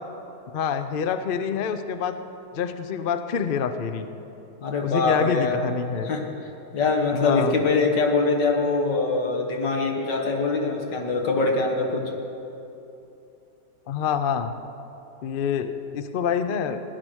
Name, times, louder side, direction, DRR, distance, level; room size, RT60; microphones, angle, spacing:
voice 1, 0.5-2.2 2.5-4.1 4.8-6.1 7.1-7.6 13.9-14.5 15.2-16.8, left 7 dB, 65° left, 9 dB, 0.5 m, -26 dB
voice 2, 4.6-5.6 6.1-6.2 6.7-12.0, left 3 dB, 80° left, 1 dB, 2.2 m, -23 dB
16.5 x 10.5 x 6.3 m, 2.9 s
omnidirectional pair, 1.9 m